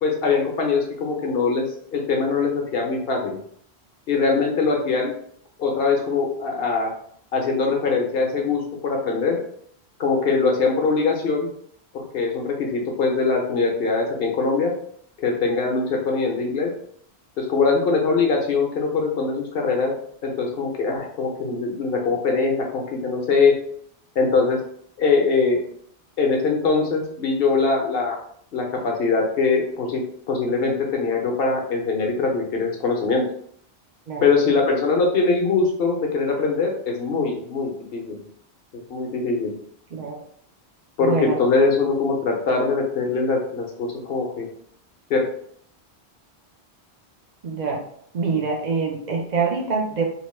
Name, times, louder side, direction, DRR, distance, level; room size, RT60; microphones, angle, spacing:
voice 1, 0.0-3.4 4.1-5.1 5.6-6.9 7.3-9.4 10.0-11.5 11.9-14.7 15.2-16.7 17.4-19.9 20.2-23.5 24.2-24.6 25.0-25.6 26.2-28.2 28.5-33.3 34.2-38.1 38.7-39.5 41.0-44.5 45.1-45.3, left 4 dB, 65° left, 0 dB, 0.9 m, -22 dB
voice 2, 41.0-41.4 47.4-47.8 48.1-50.0, right 4 dB, 50° right, 1 dB, 0.6 m, -25 dB
2.9 x 2.2 x 3.1 m, 0.65 s
omnidirectional pair, 1.1 m